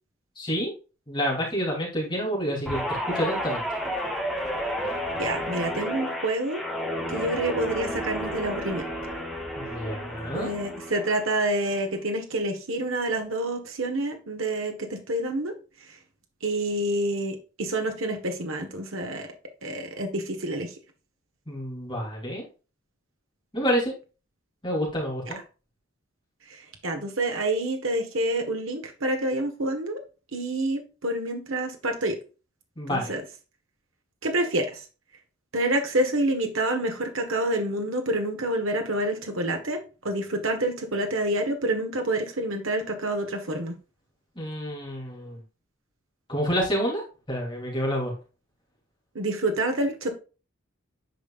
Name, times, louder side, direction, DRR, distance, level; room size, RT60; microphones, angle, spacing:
voice 1, 0.4-0.7 1.1-3.6 9.6-10.5 21.5-22.4 23.5-23.9 24.6-25.4 32.8-33.1 44.4-45.4 46.3-47.0 47.3-48.1, equal, 20° left, -3 dB, 3.3 m, -28 dB
Guitar, 2.7-11.2 11.6-12.0, equal, ahead, 1.9 m, -31 dB
voice 2, 5.1-6.6 7.1-8.8 10.3-15.5 16.4-19.3 19.6-20.7 26.5-30.0 30.3-32.2 32.9-33.2 34.2-34.8 35.5-39.8 40.0-43.7 49.1-50.1, right 1 dB, 70° right, 4 dB, 1.4 m, -28 dB
9.3 x 5.3 x 2.5 m, 0.33 s
head